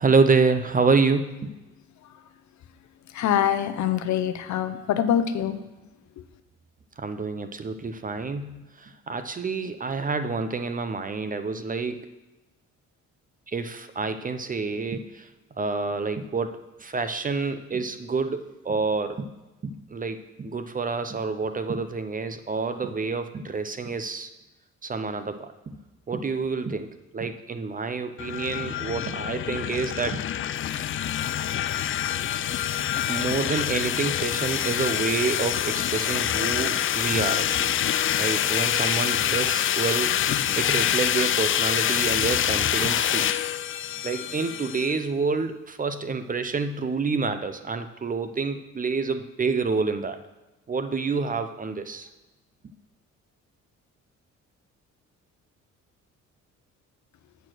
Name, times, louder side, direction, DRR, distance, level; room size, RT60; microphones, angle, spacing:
voice 1, 0.0-1.5 7.0-12.1 13.5-15.3 15.6-19.3 19.6-24.3 24.8-25.8 26.1-30.2 33.1-37.7 38.2-40.2 40.6-43.3 44.0-50.2 50.7-52.1, right 4 dB, 30° right, 10 dB, 0.6 m, -28 dB
voice 2, 3.1-5.6, left 9 dB, 70° left, 9 dB, 0.8 m, -24 dB
sound 1, 28.2-45.0, left 10 dB, 45° left, 0.4 m, -26 dB
8.2 x 4.4 x 6.2 m, 1.1 s
cardioid pair, 90°, 30 cm